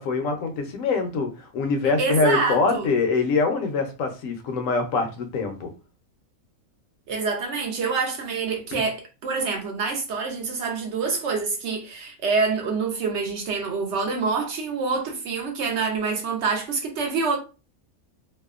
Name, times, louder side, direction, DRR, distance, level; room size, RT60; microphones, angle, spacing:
voice 1, 0.0-5.7, left 4 dB, 70° left, 0.9 m, -24 dB
voice 2, 2.0-2.9 7.1-17.4, right 4 dB, 65° right, 0.7 m, -26 dB
2.7 x 2.1 x 2.3 m
omnidirectional pair, 1.5 m